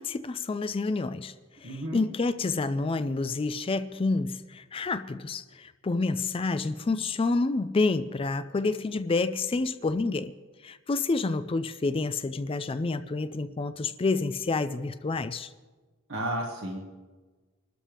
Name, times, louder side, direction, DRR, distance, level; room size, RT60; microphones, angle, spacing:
voice 1, 0.0-1.3 1.6-10.3 10.6-15.5, left 3 dB, 25° left, 0.4 m, -28 dB
voice 2, 1.6-2.0 16.1-17.0, right 1 dB, 65° right, 1.5 m, -33 dB
24.5 x 12.5 x 3.4 m
head